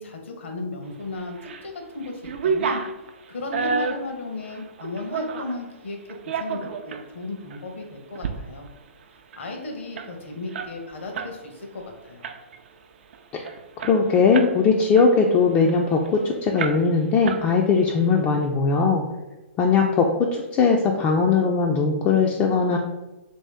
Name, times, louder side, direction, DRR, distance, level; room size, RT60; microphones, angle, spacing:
voice 1, 0.0-2.8 3.3-8.7 9.3-12.3, left 2 dB, 70° left, 3 dB, 0.8 m, -35 dB
sound 1, 1.1-1.7 2.0-5.6 6.1-7.0 7.5-7.6 8.0-8.3 8.6-8.7 9.0-11.3 11.7-11.9 12.2-12.7 13.1-13.2 13.5-14.6 14.9-16.1 16.6-17.0 17.2-17.9, right 5 dB, 60° right, 0.4 m, -30 dB
voice 2, 13.8-19.1 19.6-22.8, left 5 dB, 25° left, 1 dB, 0.3 m, -20 dB
3.0 x 2.7 x 3.4 m, 1.1 s
hypercardioid pair, 125°, 7 cm